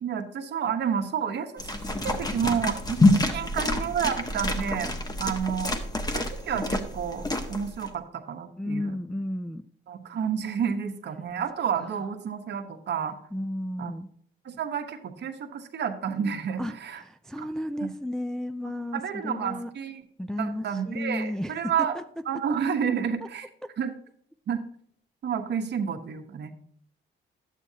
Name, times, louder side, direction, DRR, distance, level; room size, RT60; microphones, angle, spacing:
voice 1, 0.0-1.7 2.0-5.7 6.1-8.9 9.9-13.2 13.8-13.9 14.4-17.0 17.4-17.5 18.9-20.0 20.4-22.0 22.3-23.5 23.8-23.9 24.5-24.6 25.2-26.5, right 7 dB, 60° right, 7 dB, 1.0 m, -30 dB
sound 1, 1.6-7.9, left 2 dB, 20° left, 1.0 m, -27 dB
voice 2, 8.6-9.7 13.3-14.1 16.6-19.7 20.2-22.0, left 1 dB, 5° left, 8 dB, 0.3 m, -33 dB
11.0 x 8.3 x 2.8 m, 0.63 s
cardioid pair, 90°, 20 cm